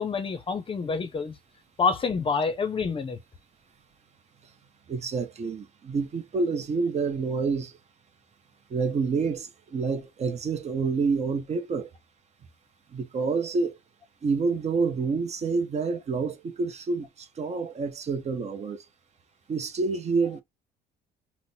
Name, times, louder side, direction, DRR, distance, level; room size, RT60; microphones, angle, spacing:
voice 1, 0.0-1.3 1.8-3.2, left 5 dB, 30° left, 0.6 m, -27 dB
voice 2, 4.9-7.7 8.7-11.9 12.9-13.8 14.2-18.8 19.5-20.4, right 4 dB, 40° right, 0.7 m, -28 dB
3.8 x 2.1 x 2.7 m
supercardioid pair, 95°, 18 cm